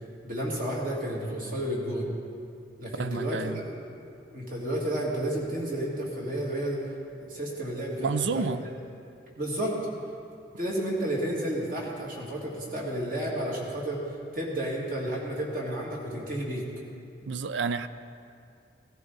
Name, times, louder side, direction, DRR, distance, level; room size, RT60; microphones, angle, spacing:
voice 1, 0.2-2.1 2.8-3.6 4.3-6.8 7.1-8.5 9.4-9.8 10.6-14.0 14.3-16.7, right 1 dB, 50° right, -3 dB, 2.5 m, -31 dB
voice 2, 3.0-3.6 8.0-8.6 17.3-17.9, right 5 dB, 85° right, 13 dB, 0.5 m, -30 dB
16.5 x 14.0 x 4.1 m, 2.5 s
head